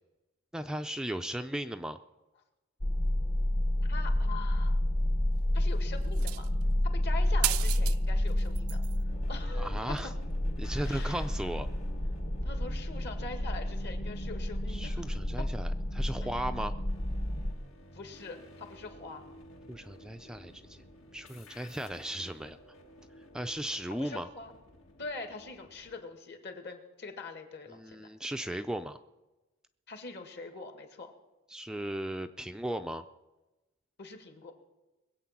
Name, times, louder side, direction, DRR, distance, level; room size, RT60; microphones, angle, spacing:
voice 1, 0.5-2.0 9.6-10.1 10.6-11.7 14.7-16.8 19.7-20.8 21.1-22.6 23.3-24.3 27.7-29.0 31.5-33.0, right 1 dB, 5° right, 7 dB, 0.4 m, -36 dB
sound 1, 2.8-17.5, left 1 dB, 35° left, 0.9 m, -30 dB
voice 2, 3.9-4.8 5.5-6.5 6.9-8.8 9.3-9.9 10.8-11.3 12.3-15.0 15.4-15.5 16.2-16.6 17.9-19.2 23.9-24.5 25.0-28.1 29.9-31.1 34.0-34.5, left 3 dB, 55° left, 5 dB, 2.0 m, -43 dB
sound 2, 6.1-6.6 7.4-8.0 8.3-9.0 10.0-10.1, right 17 dB, 85° right, 0.4 m, -33 dB
sound 3, 9.1-26.0, left 1 dB, 75° left, 1.8 m, -54 dB
21.5 x 8.4 x 5.9 m, 1.1 s
head